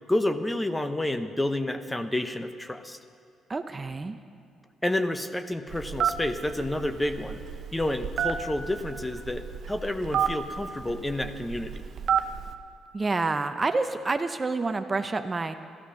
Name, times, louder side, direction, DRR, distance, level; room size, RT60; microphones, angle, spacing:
voice 1, 0.1-3.0 4.8-7.4 7.7-11.8, left 1 dB, 10° left, 9 dB, 0.7 m, -29 dB
voice 2, 3.5-4.2 12.9-15.6, right 3 dB, 30° right, 8 dB, 0.6 m, -28 dB
Telephone, 5.7-12.5, right 8 dB, 65° right, 0.7 m, -31 dB
14.0 x 13.5 x 5.7 m, 2.4 s
cardioid pair, 90°, 0 cm